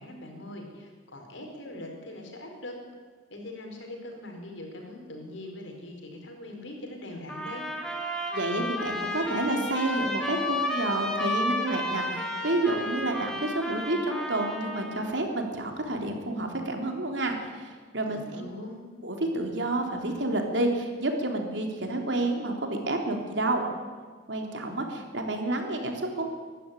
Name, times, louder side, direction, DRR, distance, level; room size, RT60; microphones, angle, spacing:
voice 1, 0.0-2.8 3.3-7.6 18.1-18.9, left 1 dB, 85° left, 2 dB, 5.4 m, -42 dB
sound 1, 7.3-15.1, left 1 dB, 5° left, 3.1 m, -32 dB
voice 2, 8.3-18.5 19.0-23.6 24.3-26.3, right 2 dB, 70° right, 2 dB, 3.6 m, -29 dB
23.0 x 12.5 x 10.0 m, 1.5 s
head